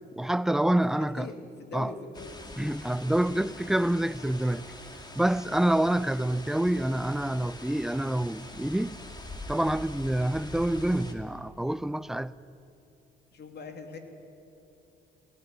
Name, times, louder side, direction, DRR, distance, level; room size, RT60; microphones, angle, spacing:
voice 1, 0.2-1.3 1.7-1.9 2.6-4.6 5.2-9.0 9.5-12.3, right 1 dB, ahead, 0.5 m, -27 dB
voice 2, 0.9-2.3 5.4-5.6 13.3-14.0, left 4 dB, 55° left, 2.8 m, -42 dB
sound 1, 2.1-11.1, left 2 dB, 20° left, 2.4 m, -44 dB
19.0 x 18.0 x 9.4 m
cardioid pair, 90°, 20 cm